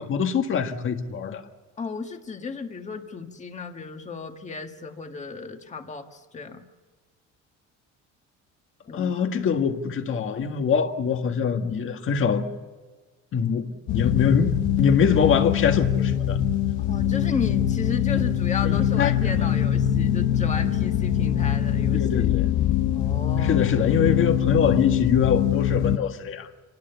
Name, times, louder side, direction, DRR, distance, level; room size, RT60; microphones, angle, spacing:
voice 1, 0.0-1.4 8.9-12.5 13.3-13.7 13.9-16.4 18.6-19.1 19.5-19.6 21.9-22.5 23.4-26.5, left 6 dB, 45° left, 6 dB, 1.8 m, -24 dB
voice 2, 1.8-6.6 8.9-9.3 16.8-22.1 22.9-23.7, left 5 dB, 25° left, 5 dB, 1.7 m, -34 dB
sound 1, 13.9-26.0, left 10 dB, 85° left, 1.2 m, -23 dB
26.5 x 19.0 x 7.0 m, 1.3 s
cardioid pair, 140°, 30 cm